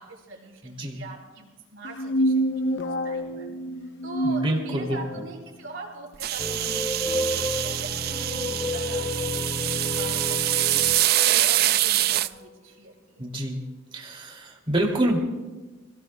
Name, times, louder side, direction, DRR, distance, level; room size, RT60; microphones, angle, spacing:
voice 1, 0.0-3.5 3.8-10.2 10.6-13.3, right 2 dB, 90° right, -2 dB, 4.5 m, -42 dB
voice 2, 0.6-1.0 4.2-5.0 13.2-13.6 13.9-15.2, right 1 dB, 25° right, 1 dB, 2.5 m, -27 dB
sound 1, 1.8-5.3, right 1 dB, 65° left, 0.8 m, -27 dB
sound 2, 6.2-12.3, right 14 dB, 50° right, 0.3 m, -25 dB
sound 3, 6.4-12.5, left 2 dB, 20° left, 0.6 m, -31 dB
28.5 x 17.5 x 2.2 m, 1.2 s
head